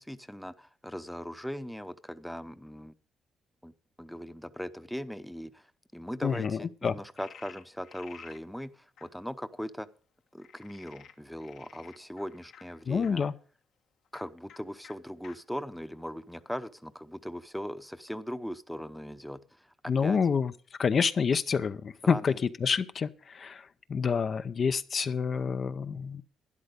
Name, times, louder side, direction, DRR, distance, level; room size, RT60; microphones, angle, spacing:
voice 1, 0.0-2.9 3.6-3.7 4.0-5.7 5.9-9.9 10.3-13.2 14.1-19.7 20.0-20.2 21.3-21.4 22.0-22.4, equal, ahead, 0.8 m, -39 dB
voice 2, 6.2-6.9 12.9-13.3 19.9-20.5 20.8-22.3 22.6-26.2, left 6 dB, 45° left, 0.6 m, -28 dB
Frog, 7.2-8.4 9.0-9.1 10.4-13.1 14.0-14.2 14.5-14.6 14.8-14.9 15.2-15.3 15.9-16.7, left 7 dB, 70° left, 1.5 m, -52 dB
12.0 x 10.0 x 5.2 m
cardioid pair, 90°, 0 cm